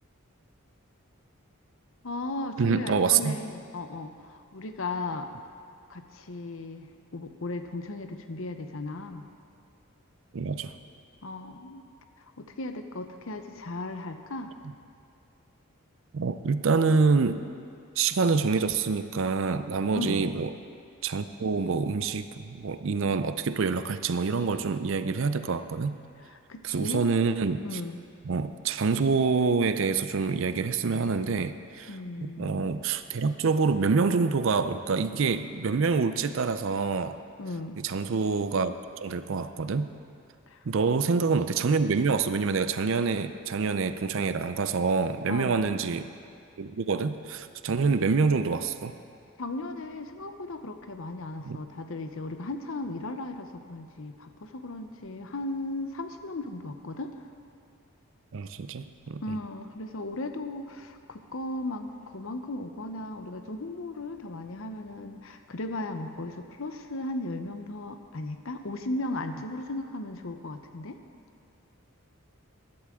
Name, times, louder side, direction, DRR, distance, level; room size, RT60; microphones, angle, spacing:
voice 1, 2.0-5.3 5.9-6.9 7.1-9.3 11.2-11.8 12.2-14.5 19.9-20.2 26.3-27.1 27.6-28.1 31.9-32.7 37.4-37.8 40.5-40.6 45.3-45.7 49.4-57.2 59.2-71.0, left 2 dB, 65° left, 7 dB, 0.7 m, -36 dB
voice 2, 2.6-3.4 10.3-10.7 16.1-17.4 18.0-20.5 21.0-26.0 26.6-27.8 28.3-31.9 32.2-37.2 37.8-39.9 40.6-46.1 46.6-48.9 51.4-51.6 58.3-59.2, right 4 dB, 60° right, 11 dB, 0.5 m, -26 dB
15.0 x 11.5 x 3.7 m, 2.4 s
head